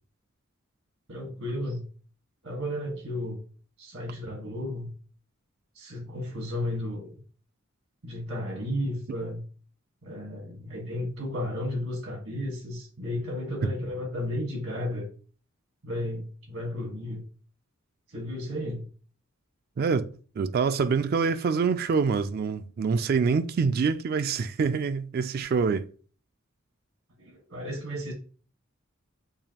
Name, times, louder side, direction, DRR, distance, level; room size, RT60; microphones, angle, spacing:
voice 1, 1.1-1.8 2.4-3.4 3.8-4.9 5.7-7.1 8.0-9.4 10.0-15.1 15.8-17.2 18.1-18.9 27.2-28.1, left 1 dB, 80° right, 1.4 m, -33 dB
voice 2, 19.8-25.9, right 5 dB, 45° right, 0.3 m, -26 dB
6.8 x 2.7 x 2.9 m
head